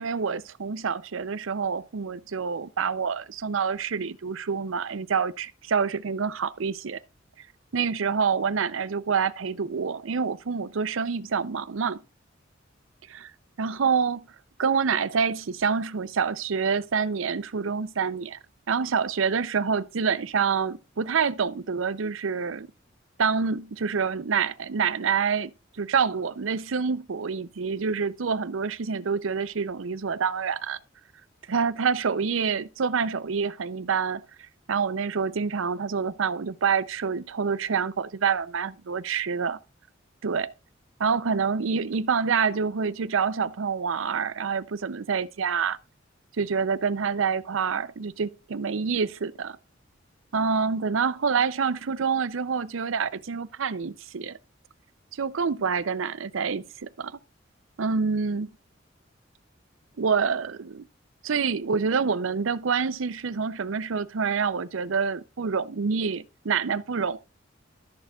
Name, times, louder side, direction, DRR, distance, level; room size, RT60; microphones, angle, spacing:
voice 1, 0.0-7.0 7.7-12.0 13.1-13.3 13.6-14.2 14.6-18.4 18.7-22.7 23.2-30.8 31.5-34.2 34.7-39.6 40.2-40.5 41.0-45.8 46.4-49.6 50.3-54.4 55.2-57.2 57.8-58.5 60.0-60.9 61.2-67.2, right 5 dB, 90° right, 0.6 m, -27 dB
14.0 x 6.7 x 2.4 m
head